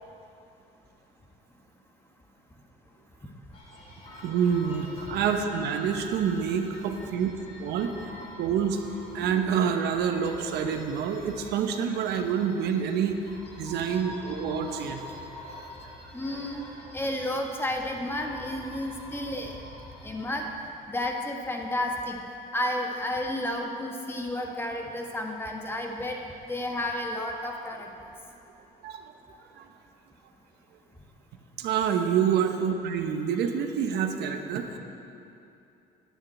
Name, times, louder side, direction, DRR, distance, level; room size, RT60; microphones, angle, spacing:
sound 1, 3.5-20.5, left 1 dB, 40° left, 2.9 m, -45 dB
voice 1, 4.2-7.3 7.6-7.9 8.4-8.8 9.1-13.2 13.6-15.0 15.5-15.7 28.8-29.7 31.6-34.8, right 7 dB, 75° right, 5 dB, 0.9 m, -27 dB
voice 2, 16.1-16.6 16.9-19.5 20.0-20.4 20.9-22.2 22.5-26.2 26.5-27.9, left 1 dB, 15° left, 1 dB, 1.4 m, -31 dB
9.6 x 7.2 x 9.0 m, 2.7 s
cardioid pair, 110°, 17 cm